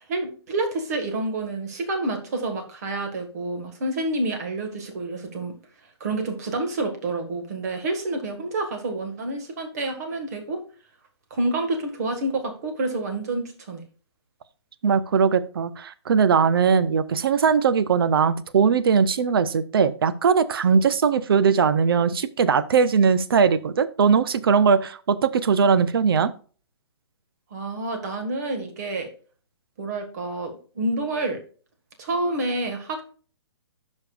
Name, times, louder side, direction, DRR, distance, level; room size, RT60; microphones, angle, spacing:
voice 1, 0.1-5.5 6.0-10.6 11.3-13.8 27.5-29.1 29.8-31.4 32.0-33.0, right 2 dB, 35° right, 5 dB, 1.7 m, -28 dB
voice 2, 14.8-26.3, right 6 dB, 55° right, 14 dB, 0.7 m, -20 dB
14.0 x 5.4 x 2.4 m, 0.40 s
hypercardioid pair, 170°, 14 cm